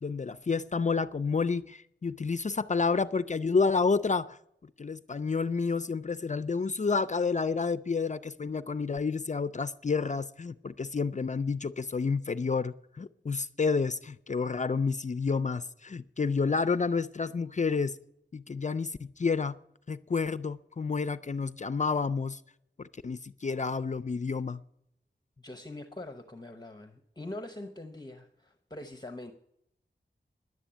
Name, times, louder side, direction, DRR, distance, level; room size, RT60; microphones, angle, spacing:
voice 1, 0.0-4.4 4.8-18.0 18.3-19.6 19.9-22.4 22.8-24.6, left 4 dB, 40° left, 0.4 m, -30 dB
voice 2, 25.4-29.3, left 1 dB, 20° left, 0.9 m, -43 dB
11.0 x 8.2 x 8.8 m
wide cardioid pair, 85°, 19 cm